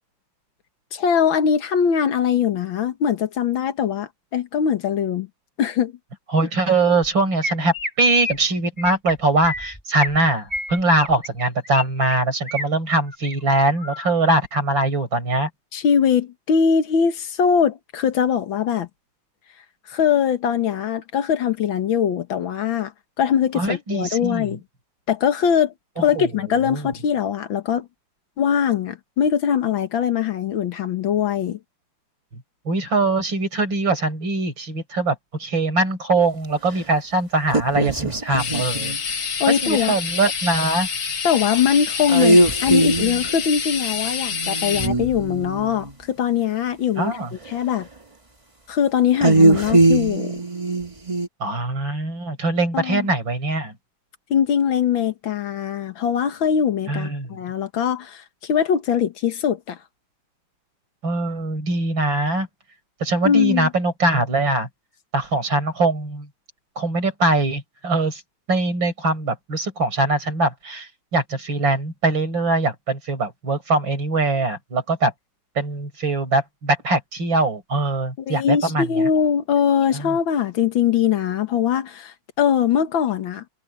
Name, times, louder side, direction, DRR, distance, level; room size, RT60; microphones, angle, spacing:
voice 1, 0.9-5.3 5.6-5.9 15.7-18.9 19.9-22.9 23.2-24.6 25.1-25.7 26.0-27.9 28.4-31.6 39.4-40.0 41.2-47.1 47.5-47.9 48.7-50.4 52.7-53.1 54.3-59.8 63.3-63.7 78.2-83.4, left 8 dB, 85° left, 2.1 m, -21 dB
voice 2, 6.3-15.5 23.5-24.5 26.0-26.9 32.7-38.9 39.6-40.9 47.0-47.3 51.4-53.7 56.9-57.4 61.0-62.5 63.0-64.7 65.1-66.3 66.8-68.2 68.5-75.1 75.6-79.0 79.9-80.1, right 2 dB, 80° right, 6.2 m, -22 dB
Chirp tweet, 7.0-7.1 7.4-7.9 8.2-8.4 8.8-9.1 9.4-10.2 10.5-11.8 12.1-12.7 13.1-13.4 13.8-14.1, left 1 dB, 10° left, 4.6 m, -30 dB
sound 1, 37.5-39.0 42.1-43.3 44.3-45.9 49.2-51.3, right 2 dB, 15° right, 1.8 m, -19 dB
sound 2, 38.4-44.9, left 6 dB, 65° left, 2.5 m, -27 dB
omnidirectional pair, 2.1 m